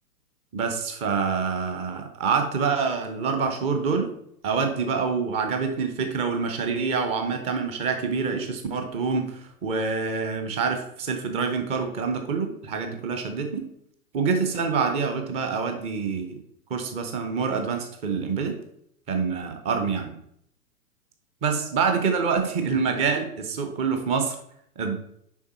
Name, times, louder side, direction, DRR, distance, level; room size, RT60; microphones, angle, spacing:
voice 1, 0.5-4.1 4.4-13.7 14.1-16.4 16.7-18.6 19.1-20.1 21.4-24.3 24.8-24.9, right 5 dB, 15° right, 6 dB, 0.7 m, -26 dB
7.2 x 5.3 x 4.1 m, 0.71 s
figure-of-eight pair, 120°, 45 cm